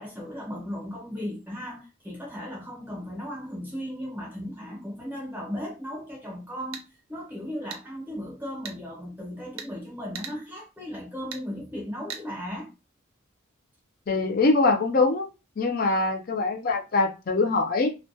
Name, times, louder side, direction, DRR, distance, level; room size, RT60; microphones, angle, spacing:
voice 1, 0.0-6.8 7.1-12.7, equal, 10° right, 0.7 m, -36 dB
sound 1, 6.6-6.9 7.7-7.8 8.6-8.8 9.6-9.7 10.1-10.4 11.3-11.4 12.1-12.2, right 7 dB, 80° right, 0.5 m, -38 dB
voice 2, 14.1-15.3 15.6-17.9, left 3 dB, 45° left, 0.4 m, -23 dB
2.2 x 2.2 x 2.6 m
head